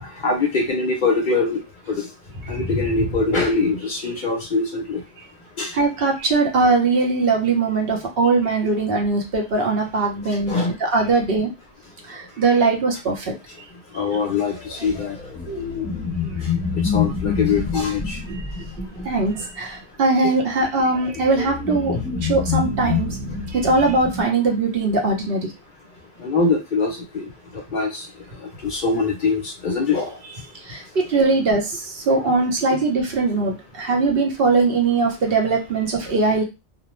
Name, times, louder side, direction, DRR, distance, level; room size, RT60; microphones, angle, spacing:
voice 1, 0.0-1.6 1.9-2.0 2.5-5.0 5.6-5.7 10.5-10.7 13.9-15.2 16.8-18.2 20.2-20.3 26.2-27.3 27.7-28.1 28.4-30.2, left 4 dB, 55° left, 2 dB, 0.6 m, -23 dB
voice 2, 2.5-3.1 5.7-10.5 10.8-11.5 12.0-13.3 18.3-18.6 19.0-23.1 23.5-25.5 30.6-36.4, right 3 dB, 65° right, 0 dB, 0.9 m, -21 dB
sound 1, 14.4-19.5 20.5-24.2, left 6 dB, ahead, 0.9 m, -27 dB
2.5 x 2.1 x 3.0 m, 0.26 s
omnidirectional pair, 1.1 m